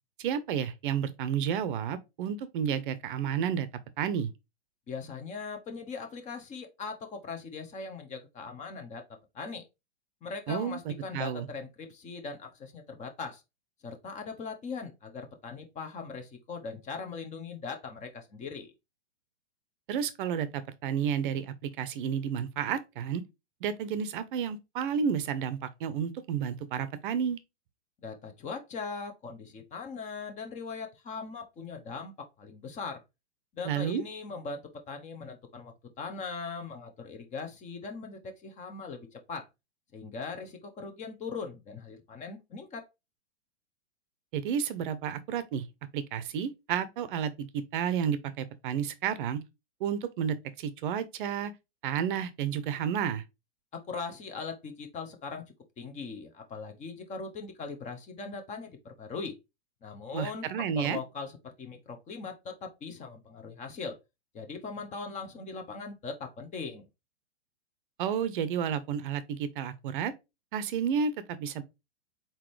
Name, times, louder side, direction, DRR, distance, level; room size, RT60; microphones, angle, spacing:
voice 1, 0.2-3.7 4.0-4.3 10.5-11.5 19.9-23.2 23.6-27.4 33.6-34.0 44.3-45.7 45.9-49.4 49.8-51.5 51.8-53.2 60.1-61.0 68.0-70.1 70.5-71.6, right 8 dB, 50° right, 0.7 m, -31 dB
voice 2, 4.9-9.0 9.3-9.6 10.2-13.4 13.8-18.7 28.0-33.0 33.5-39.5 39.9-42.9 53.7-59.4 59.8-64.0 64.3-66.9, left 4 dB, 20° left, 0.9 m, -40 dB
4.3 x 3.9 x 3.1 m
hypercardioid pair, 115°, 33 cm